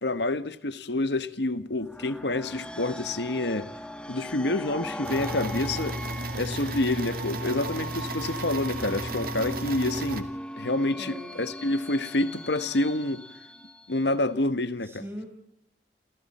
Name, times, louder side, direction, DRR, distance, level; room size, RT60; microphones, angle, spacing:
voice 1, 0.0-3.7 4.1-6.0 6.3-10.3 10.6-13.2 13.9-15.0, left 2 dB, 75° left, 1.2 m, -28 dB
sound 1, 1.8-14.3, equal, 5° left, 1.3 m, -40 dB
Sewing machine, 5.0-10.2, right 2 dB, 55° right, 2.4 m, -34 dB
voice 2, 10.9-11.5 14.8-15.3, equal, 15° right, 5.2 m, -40 dB
29.0 x 29.0 x 4.3 m
head